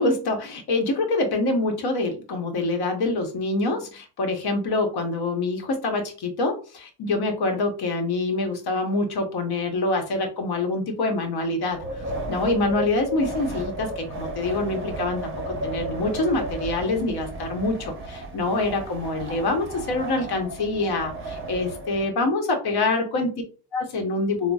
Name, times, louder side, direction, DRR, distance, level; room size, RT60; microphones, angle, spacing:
voice 1, 0.0-11.8 12.3-23.4 23.7-24.5, left 2 dB, 50° left, 4 dB, 1.1 m, -25 dB
Wind, 11.7-22.1, right 1 dB, 25° right, 1.0 m, -34 dB
3.9 x 2.2 x 2.3 m, 0.36 s
supercardioid pair, 75°, 50 cm